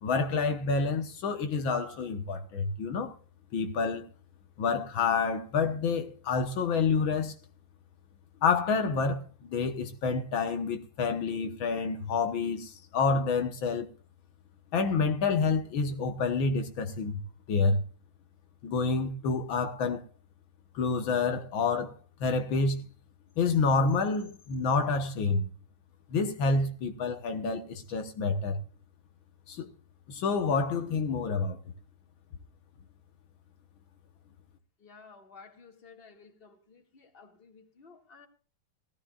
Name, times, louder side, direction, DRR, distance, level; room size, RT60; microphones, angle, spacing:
voice 1, 0.0-3.1 3.5-4.1 4.6-7.4 8.4-13.9 14.7-17.2 17.5-17.8 18.6-20.0 20.8-21.9 22.2-22.9 23.4-25.4 26.1-28.6 29.5-29.7 30.1-31.6, left 4 dB, 75° left, 1.9 m, -28 dB
voice 2, 34.8-38.3, left 5 dB, 30° left, 2.0 m, -54 dB
18.0 x 14.5 x 2.4 m
omnidirectional pair, 2.2 m